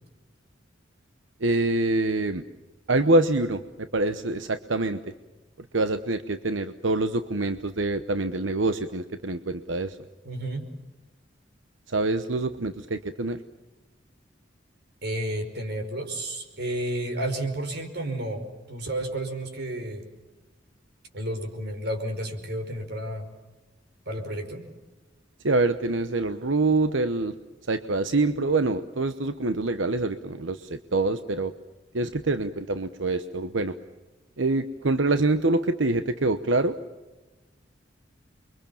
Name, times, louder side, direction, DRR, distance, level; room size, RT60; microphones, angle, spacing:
voice 1, 1.4-2.4 2.9-5.0 5.7-10.0 11.9-13.4 25.4-27.3 27.7-31.5 31.9-33.8 34.4-36.8, right 2 dB, 90° right, 10 dB, 1.1 m, -25 dB
voice 2, 10.2-10.7 15.0-20.1 21.1-23.3 24.1-24.7, right 1 dB, 60° right, 5 dB, 5.3 m, -31 dB
29.5 x 24.0 x 7.2 m, 1.1 s
head